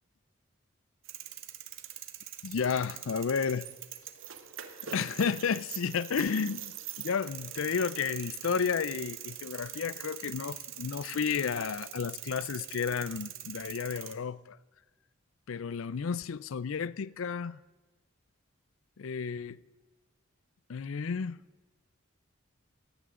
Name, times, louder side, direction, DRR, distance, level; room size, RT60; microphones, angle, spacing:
sound 1, 1.0-14.1, right 11 dB, 65° right, 1.3 m, -43 dB
voice 1, 2.4-3.7 4.9-14.6 15.5-17.6 19.0-19.6 20.7-21.4, left 6 dB, 70° left, 0.5 m, -32 dB
19.0 x 16.0 x 3.7 m
head